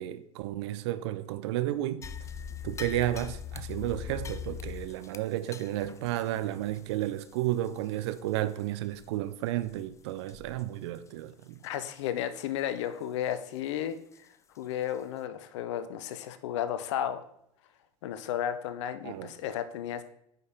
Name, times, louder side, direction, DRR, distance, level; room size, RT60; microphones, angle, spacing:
voice 1, 0.0-2.1 2.6-11.6 19.0-19.3, right 14 dB, 50° right, 0.6 m, -32 dB
sound 1, 2.0-8.6 8.9-9.1 9.6-9.8 10.3-10.6 10.9-11.1 11.6-11.7 14.1-14.2 14.8-14.9, left 8 dB, 15° left, 0.5 m, -42 dB
voice 2, 11.6-14.3 14.6-17.2 18.0-20.0, left 10 dB, 55° left, 0.7 m, -33 dB
9.3 x 5.4 x 3.7 m
figure-of-eight pair, 75°, 18 cm